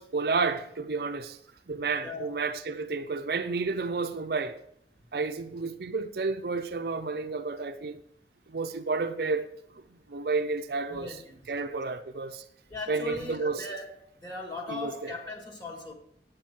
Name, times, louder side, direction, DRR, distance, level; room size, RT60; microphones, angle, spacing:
voice 1, 0.0-1.4 1.7-4.6 5.1-8.0 8.5-9.5 10.1-11.2 11.5-12.4 12.9-13.7 14.7-15.1, right 4 dB, 60° right, 0.5 m, -31 dB
voice 2, 2.0-2.3 10.9-11.4 11.7-11.8 12.7-15.9, left 2 dB, 25° left, 2.0 m, -39 dB
8.7 x 8.3 x 4.5 m
head